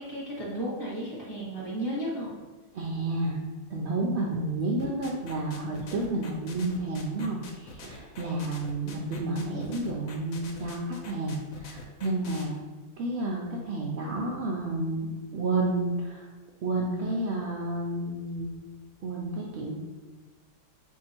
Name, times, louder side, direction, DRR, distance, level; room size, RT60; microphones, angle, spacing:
voice 1, 0.0-2.3, right 1 dB, 20° left, -8 dB, 0.7 m, -33 dB
voice 2, 2.7-3.4 3.7-12.6 13.0-16.3 16.6-18.5 19.0-19.7, right 2 dB, 75° right, -2 dB, 0.6 m, -30 dB
sound 1, 4.8-12.4, left 3 dB, 65° left, 1.0 m, -45 dB
4.6 x 2.7 x 4.3 m, 1.3 s
omnidirectional pair, 1.7 m